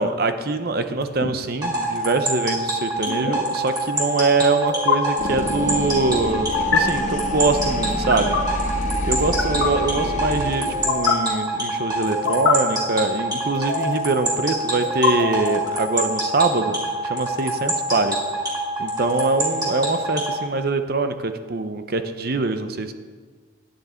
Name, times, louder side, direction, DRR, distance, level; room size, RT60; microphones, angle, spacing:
voice 1, 0.0-8.4 9.1-16.8 17.0-18.2 18.8-22.9, right 3 dB, 50° right, 9 dB, 0.7 m, -23 dB
sound 1, 1.0-1.3 3.1-3.3 4.7-5.0 6.5-6.8 7.9-8.4 9.2-9.7 10.7-11.1 12.1-12.5 13.5-14.1 14.8-15.7, left 6 dB, 65° left, 1.5 m, -24 dB
sound 2, 1.6-20.4, right 2 dB, 20° right, 2.6 m, -25 dB
Helicopter Flyby, 5.2-10.9, left 1 dB, 40° left, 0.7 m, -28 dB
10.5 x 9.7 x 4.4 m, 1.5 s
head